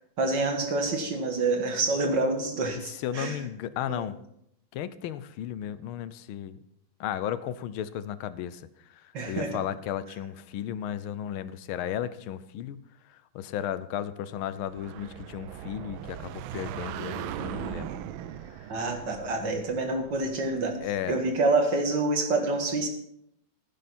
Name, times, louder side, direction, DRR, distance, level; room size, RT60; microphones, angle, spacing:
voice 1, 0.2-3.4 3.9-4.0 9.1-9.6 18.7-20.8 21.1-22.9, right 3 dB, 60° right, 4 dB, 2.3 m, -27 dB
voice 2, 2.8-4.1 4.7-6.6 7.0-8.6 8.9-12.8 13.1-17.9 18.6-18.7 19.4-19.6 20.8-21.2, left 10 dB, 85° left, 15 dB, 1.5 m, -34 dB
sound 1, 14.5-21.1, right 11 dB, 80° right, 1.4 m, -39 dB
15.0 x 10.0 x 4.3 m, 0.74 s
omnidirectional pair, 2.2 m